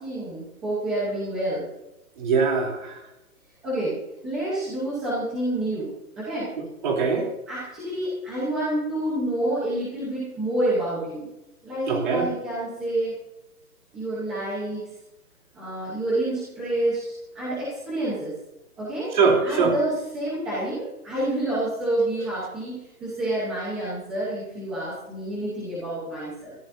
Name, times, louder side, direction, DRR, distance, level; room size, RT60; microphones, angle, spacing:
voice 1, 0.0-1.7 3.6-4.0 4.2-5.9 6.2-6.5 7.5-11.3 11.6-13.1 13.9-14.9 15.5-18.3 18.8-19.1 19.4-26.5, right 1 dB, 5° right, -10 dB, 0.9 m, -28 dB
voice 2, 2.2-2.9 6.8-7.3 11.9-12.3 19.1-19.7, right 5 dB, 30° right, 1 dB, 3.3 m, -21 dB
22.0 x 14.5 x 2.7 m, 0.91 s
hypercardioid pair, 175°, 45 cm